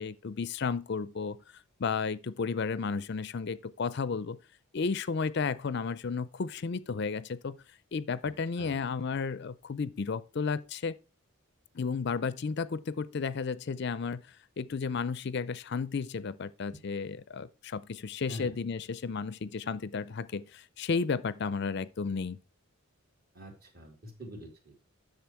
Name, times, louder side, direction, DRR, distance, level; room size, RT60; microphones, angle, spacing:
voice 1, 0.0-1.4 1.8-4.4 4.7-7.6 7.9-10.9 11.7-14.2 14.6-22.4, left 5 dB, 50° left, 0.4 m, -33 dB
voice 2, 8.2-8.9 18.3-18.6 23.3-24.7, left 1 dB, 45° right, 3.1 m, -45 dB
10.5 x 6.8 x 4.5 m
head